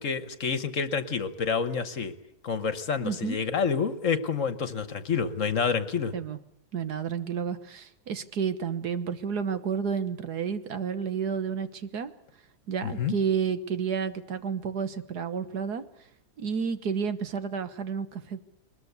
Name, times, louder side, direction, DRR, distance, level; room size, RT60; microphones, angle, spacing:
voice 1, 0.0-2.1 2.4-6.1 12.8-13.1, left 6 dB, 55° left, 12 dB, 1.5 m, -28 dB
voice 2, 3.0-3.4 6.1-6.4 6.7-12.1 12.7-15.8 16.4-18.4, right 6 dB, 75° right, 11 dB, 1.8 m, -31 dB
22.0 x 21.0 x 8.1 m, 0.80 s
omnidirectional pair, 1.7 m